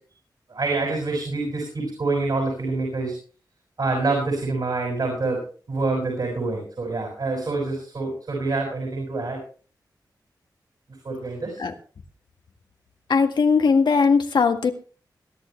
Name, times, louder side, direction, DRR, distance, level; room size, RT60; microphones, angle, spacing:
voice 1, 0.5-3.2 3.8-5.4 5.7-9.4 11.0-11.6, right 3 dB, 65° right, 1 dB, 6.2 m, -26 dB
voice 2, 13.1-14.7, left 5 dB, 80° left, 5 dB, 1.8 m, -19 dB
21.5 x 11.0 x 3.3 m, 0.40 s
wide cardioid pair, 70°, 7 cm